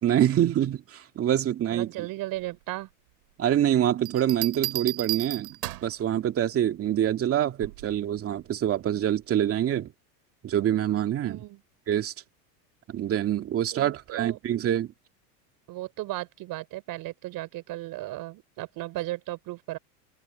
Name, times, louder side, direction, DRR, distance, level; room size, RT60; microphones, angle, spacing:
voice 1, 0.0-1.9 3.4-9.9 10.4-11.4 11.9-12.1 12.9-14.9, right 11 dB, 30° right, 2.3 m, -25 dB
voice 2, 1.7-2.9 11.2-11.6 13.7-14.4 15.7-19.8, right 17 dB, 45° right, 4.5 m, -35 dB
Bell, 4.1-6.0 7.6-8.0, right 15 dB, 85° right, 2.4 m, -33 dB
supercardioid pair, 135°, 47 cm